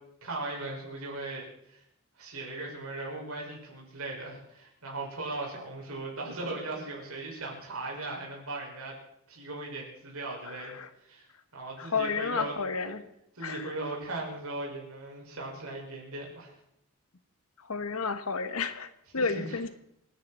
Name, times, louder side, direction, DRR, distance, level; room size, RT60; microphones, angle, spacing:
voice 1, 0.2-1.8 2.2-8.9 9.3-11.3 11.5-12.6 12.8-12.9 13.4-16.5 19.2-19.6, right 2 dB, 80° right, -2 dB, 5.8 m, -38 dB
voice 2, 10.4-10.9 11.8-13.0 13.4-13.8 17.6-19.7, left 4 dB, 90° left, 11 dB, 1.3 m, -32 dB
28.0 x 10.5 x 4.3 m, 0.76 s
head